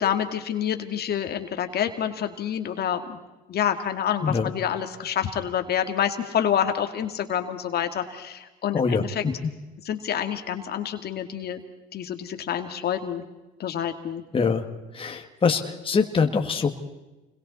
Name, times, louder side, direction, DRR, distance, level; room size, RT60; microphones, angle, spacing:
voice 1, 0.0-3.2 3.5-9.2 9.8-11.6 11.9-13.2 13.6-14.2, left 9 dB, 50° left, 7 dB, 2.1 m, -27 dB
voice 2, 8.7-9.3 14.3-14.6 14.9-16.7, left 5 dB, 25° left, 4 dB, 2.0 m, -24 dB
29.0 x 22.5 x 4.2 m, 1.1 s
cardioid pair, 105°, 21 cm